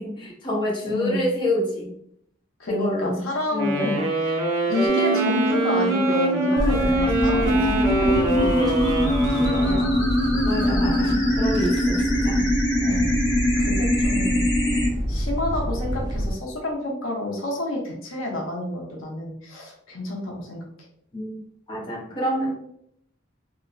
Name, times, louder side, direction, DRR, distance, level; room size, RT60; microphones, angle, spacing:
voice 1, 0.0-1.9 2.7-3.2 3.5-4.0 10.4-12.5 21.1-21.4 21.7-22.5, equal, 25° left, -5 dB, 0.7 m, -27 dB
voice 2, 0.8-1.2 2.6-4.0 4.3-4.4 4.7-8.8 9.3-10.0 12.8-13.1 13.6-14.5 15.1-20.6, left 1 dB, 85° left, -1 dB, 0.7 m, -29 dB
Wind instrument woodwind instrument, 3.5-10.0, right 2 dB, 70° right, 0.7 m, -25 dB
sound 1, 4.9-14.9, equal, 60° left, 1.1 m, -23 dB
sound 2, 6.6-16.3, equal, 20° right, 0.3 m, -28 dB
3.0 x 2.0 x 2.4 m, 0.70 s
head